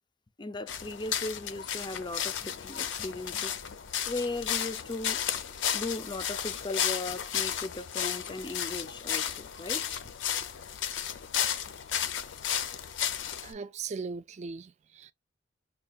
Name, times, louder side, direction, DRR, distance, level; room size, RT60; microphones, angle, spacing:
voice 1, 0.4-3.5 4.1-5.2 5.7-9.9, left 2 dB, 25° left, 0.5 m, -37 dB
sound 1, 0.7-13.5, left 9 dB, 75° left, 0.5 m, -33 dB
voice 2, 13.4-15.1, right 5 dB, 35° right, 0.3 m, -39 dB
5.7 x 2.2 x 2.4 m
head